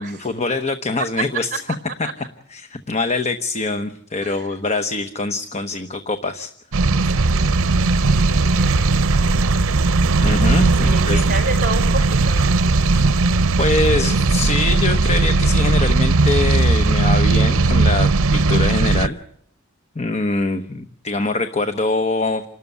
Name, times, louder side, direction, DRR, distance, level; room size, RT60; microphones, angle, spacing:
voice 1, 0.0-1.6 2.0-2.1 2.5-6.5 6.8-7.2 10.2-11.2 12.9-13.2 13.6-19.2 19.9-22.4, left 3 dB, 30° left, 8 dB, 1.0 m, -24 dB
voice 2, 4.2-4.5 7.3-8.9 10.8-12.6, right 3 dB, 40° right, 4 dB, 4.8 m, -31 dB
sound 1, 6.7-19.1, right 3 dB, 80° right, 0.8 m, -17 dB
28.5 x 12.5 x 9.2 m, 0.69 s
head